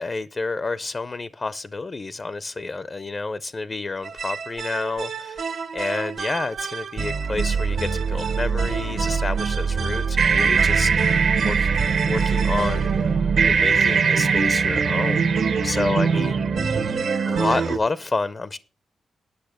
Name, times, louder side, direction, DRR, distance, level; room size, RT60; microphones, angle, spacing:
voice 1, 0.0-5.5 5.7-11.2 11.4-11.7 12.1-12.9 13.4-16.5 17.3-18.6, left 3 dB, 35° left, 0.5 m, -29 dB
sound 1, 4.0-17.8, right 5 dB, 70° right, 1.1 m, -22 dB
10.0 x 6.5 x 6.5 m
cardioid pair, 95°, 0 cm